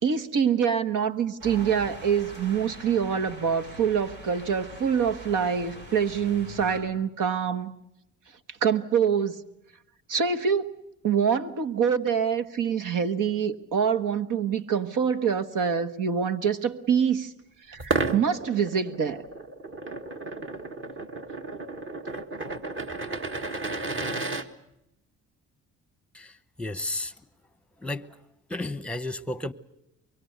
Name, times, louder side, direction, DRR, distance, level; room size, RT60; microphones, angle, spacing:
voice 1, 0.0-7.7 8.6-9.4 10.1-10.7 11.0-17.3 17.7-19.2, right 7 dB, 65° right, 1.5 m, -25 dB
sound 1, 1.4-6.8, equal, 90° right, 7.7 m, -43 dB
sound 2, 17.8-24.4, right 3 dB, 35° right, 1.7 m, -33 dB
voice 2, 26.6-27.1 27.8-28.1 28.5-29.5, left 2 dB, 5° left, 1.0 m, -32 dB
24.0 x 23.0 x 8.1 m
cardioid pair, 80°, 34 cm